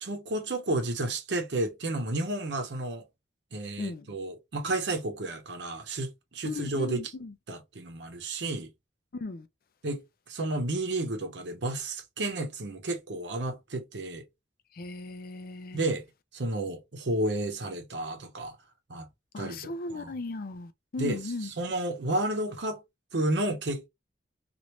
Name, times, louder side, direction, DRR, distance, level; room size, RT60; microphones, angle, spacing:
voice 1, 0.0-3.0 3.5-7.1 7.5-8.7 9.8-14.2 15.7-16.0 16.3-18.6 18.9-19.1 19.4-20.1 21.0-22.8 23.1-23.9, right 2 dB, 85° right, 0.8 m, -32 dB
voice 2, 6.4-7.3 9.1-9.5 14.8-15.9 19.3-21.5, left 3 dB, 55° left, 0.5 m, -37 dB
3.1 x 2.5 x 2.9 m
head